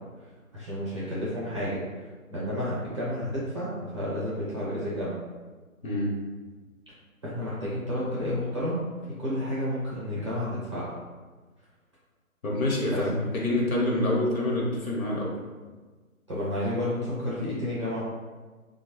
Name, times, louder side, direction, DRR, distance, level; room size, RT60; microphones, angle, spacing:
voice 1, 0.5-1.8 2.3-5.2 7.2-8.8 9.2-10.9 12.9-13.2 16.3-18.0, equal, 20° right, -9 dB, 0.6 m, -31 dB
voice 2, 5.8-6.2 12.4-15.3, left 1 dB, 70° left, -3 dB, 1.1 m, -26 dB
3.1 x 2.2 x 3.0 m, 1.4 s
figure-of-eight pair, 150°, 43 cm